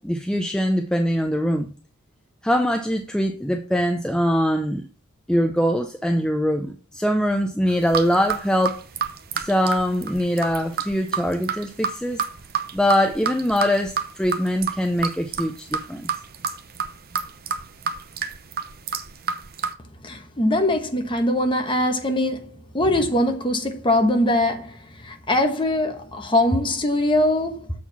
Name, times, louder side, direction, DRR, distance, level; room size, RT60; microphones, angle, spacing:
voice 1, 0.0-1.7 2.4-4.9 5.3-8.8 9.4-12.2 12.7-16.1, equal, 5° left, 0.5 m, -22 dB
sound 1, 7.7-19.7, right 6 dB, 45° right, 0.8 m, -29 dB
voice 2, 20.0-27.7, left 1 dB, 25° left, 1.2 m, -22 dB
7.5 x 4.5 x 5.7 m
head